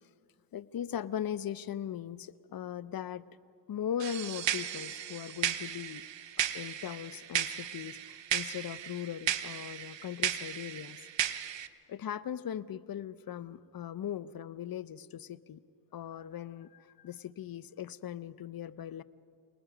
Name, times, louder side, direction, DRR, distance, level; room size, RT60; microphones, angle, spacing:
voice 1, 0.5-3.2 3.7-6.0 6.5-11.0 11.9-15.6 15.9-19.0, left 9 dB, 45° left, 16 dB, 0.7 m, -39 dB
sound 1, 4.0-11.7, right 10 dB, 60° right, 1.0 m, -35 dB
28.5 x 19.5 x 5.0 m, 2.3 s
cardioid pair, 80°, 50 cm